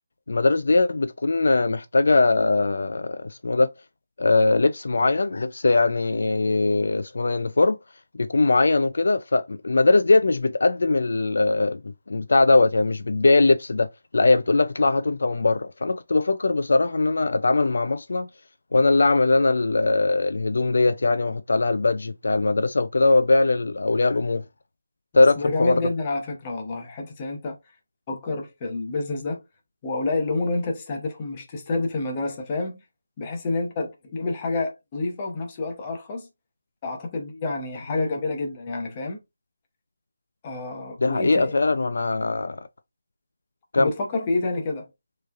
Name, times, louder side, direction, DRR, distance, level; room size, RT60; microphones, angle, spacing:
voice 1, 0.3-3.7 4.2-7.8 8.1-13.9 14.1-18.3 18.7-24.4 25.1-25.8 41.0-42.7 43.7-43.9, left 3 dB, 60° left, 0.3 m, -21 dB
voice 2, 25.1-27.6 28.1-29.4 29.8-32.8 33.2-36.3 36.8-39.2 40.4-41.5 43.8-44.9, left 3 dB, 15° left, 0.7 m, -28 dB
4.6 x 3.1 x 2.4 m
hypercardioid pair, 180°, 0 cm